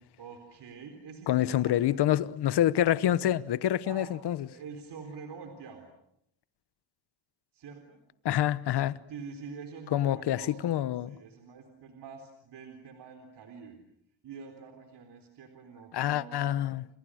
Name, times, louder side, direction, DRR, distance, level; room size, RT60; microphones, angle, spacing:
voice 1, 0.2-2.0 3.8-4.1 4.5-5.8 7.5-8.0 9.1-10.8 11.1-13.8 14.2-16.8, right 5 dB, 55° right, 4.0 m, -46 dB
voice 2, 1.3-4.5 8.2-8.9 9.9-11.1 15.9-16.9, left 12 dB, 50° left, 1.1 m, -27 dB
29.0 x 28.0 x 6.4 m
cardioid pair, 125°, 50 cm